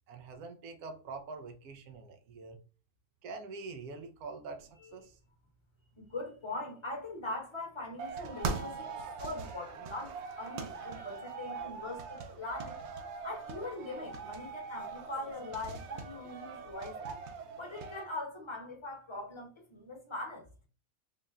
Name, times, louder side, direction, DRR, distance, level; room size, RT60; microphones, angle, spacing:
voice 1, 0.1-2.6 3.2-5.2, right 4 dB, 90° right, 1.1 m, -45 dB
voice 2, 6.0-12.8 13.2-17.2 17.6-20.4, left 2 dB, 25° left, 0.8 m, -41 dB
sound 1, 8.0-18.0, right 4 dB, 65° right, 0.7 m, -41 dB
3.9 x 2.1 x 3.5 m
omnidirectional pair, 1.5 m